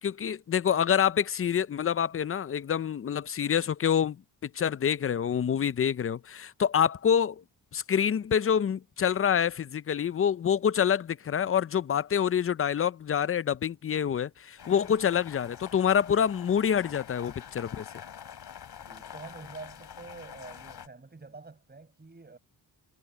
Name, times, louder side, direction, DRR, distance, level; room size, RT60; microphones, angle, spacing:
voice 1, 0.0-4.2 4.4-7.4 7.7-17.9, left 8 dB, 35° left, 0.4 m, -26 dB
sound 1, 14.6-20.9, left 8 dB, 65° left, 3.1 m, -46 dB
voice 2, 18.8-22.4, right 3 dB, 20° right, 6.3 m, -47 dB
wide cardioid pair, 125°, 43 cm